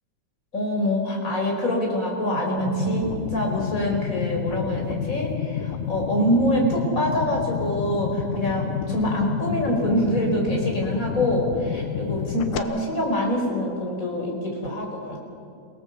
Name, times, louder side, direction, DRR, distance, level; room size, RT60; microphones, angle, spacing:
voice 1, 0.5-15.2, equal, 25° left, 0 dB, 4.9 m, -25 dB
sound 1, 2.6-12.6, left 9 dB, 85° left, 2.3 m, -30 dB
29.5 x 17.5 x 7.2 m, 2.4 s
omnidirectional pair, 3.5 m